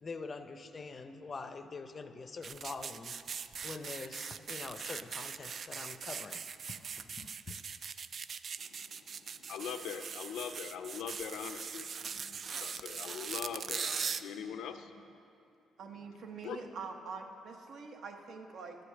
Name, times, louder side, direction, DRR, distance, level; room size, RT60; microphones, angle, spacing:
voice 1, 0.0-3.1 3.6-6.4 6.7-7.6, left 4 dB, 40° left, 9 dB, 0.6 m, -45 dB
sound 1, 2.4-14.2, right 6 dB, 50° right, 0.3 m, -41 dB
voice 2, 8.6-15.2 15.8-16.6, left 7 dB, 85° left, 8 dB, 0.6 m, -43 dB
voice 3, 15.8-18.8, right 4 dB, 70° right, 3 dB, 1.0 m, -45 dB
12.0 x 5.1 x 7.1 m, 2.6 s
cardioid pair, 90°, 0 cm